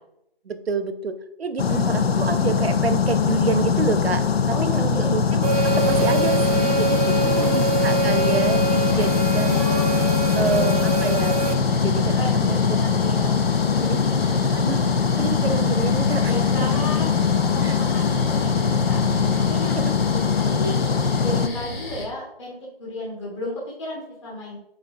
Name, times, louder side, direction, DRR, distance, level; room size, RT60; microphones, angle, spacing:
voice 1, 0.4-9.6 10.4-11.4 11.7-12.8 13.8-14.0 14.5-14.8 15.2-16.3 17.6-17.8 19.7-20.6, right 5 dB, 75° right, 10 dB, 0.8 m, -28 dB
sound 1, 1.6-21.5, left 6 dB, 75° left, 0.6 m, -21 dB
voice 2, 4.5-5.1 7.1-8.0 9.5-10.9 12.1-13.4 13.7-14.6 16.2-17.1 17.4-19.0 19.5-19.8 20.4-20.8 21.2-24.6, left 1 dB, 30° left, -6 dB, 1.8 m, -34 dB
sound 2, 5.4-11.5, right 4 dB, 35° right, 0.8 m, -25 dB
sound 3, 5.5-22.0, left 1 dB, 50° left, 2.4 m, -32 dB
9.3 x 4.3 x 2.5 m, 0.80 s
figure-of-eight pair, 165°, 31 cm